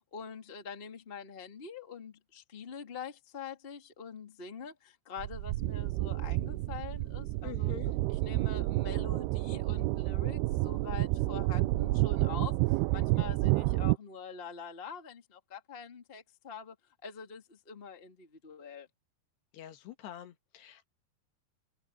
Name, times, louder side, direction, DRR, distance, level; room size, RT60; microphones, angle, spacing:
voice 1, 0.0-7.7 8.1-16.7 17.0-18.9, left 6 dB, 20° left, 1.6 m, -45 dB
sound 1, 5.2-14.0, right 19 dB, 80° right, 2.4 m, -30 dB
voice 2, 7.4-7.9 19.5-20.9, left 12 dB, 75° left, 3.6 m, -46 dB
omnidirectional pair, 5.0 m